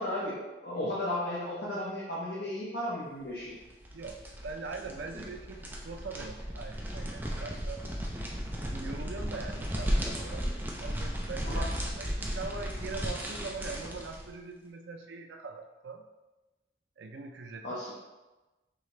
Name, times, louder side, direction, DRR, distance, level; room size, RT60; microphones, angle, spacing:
voice 1, 0.0-3.5 11.5-11.6 17.6-17.9, left 1 dB, 60° left, -8 dB, 0.8 m, -34 dB
sound 1, 3.6-14.3, equal, 10° right, 0.4 m, -35 dB
voice 2, 3.9-7.8 8.6-10.5 10.8-16.0 17.0-17.8, right 4 dB, 85° right, 5 dB, 0.4 m, -42 dB
4.8 x 2.8 x 3.1 m, 1.1 s
head